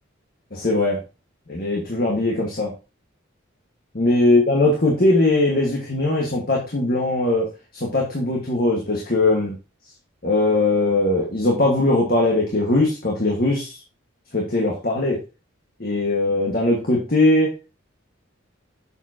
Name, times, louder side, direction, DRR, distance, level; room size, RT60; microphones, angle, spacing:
voice 1, 0.5-1.0 1.5-2.7 3.9-7.5 7.7-9.5 10.2-13.8 14.3-15.2 15.8-17.5, left 2 dB, 50° left, -2 dB, 1.7 m, -20 dB
7.3 x 7.0 x 2.9 m, 0.31 s
head